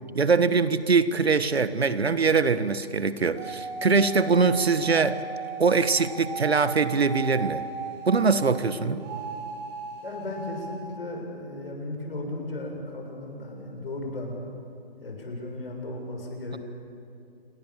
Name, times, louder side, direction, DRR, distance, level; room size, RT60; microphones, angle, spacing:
voice 1, 0.1-5.2 5.6-7.6 8.1-9.0, right 4 dB, 80° right, 13 dB, 1.6 m, -22 dB
sound 1, 3.3-8.7 9.0-10.7, right 5 dB, 25° right, 4.9 m, -36 dB
voice 2, 8.8-9.3 10.0-14.4 15.0-16.6, left 2 dB, 65° left, 2 dB, 7.2 m, -36 dB
28.0 x 22.0 x 7.5 m, 2.7 s
figure-of-eight pair, 155°, 31 cm